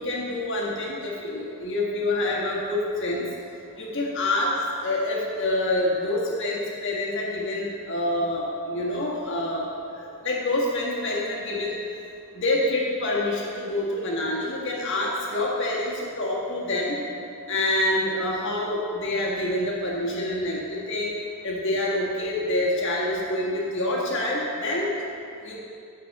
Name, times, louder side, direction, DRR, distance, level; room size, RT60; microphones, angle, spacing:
voice 1, 0.0-3.2 3.8-4.5 4.8-11.8 12.3-17.0 17.5-21.1 21.4-25.0 25.4-25.6, left 1 dB, 55° left, -4 dB, 1.6 m, -27 dB
8.8 x 7.4 x 4.2 m, 2.5 s
head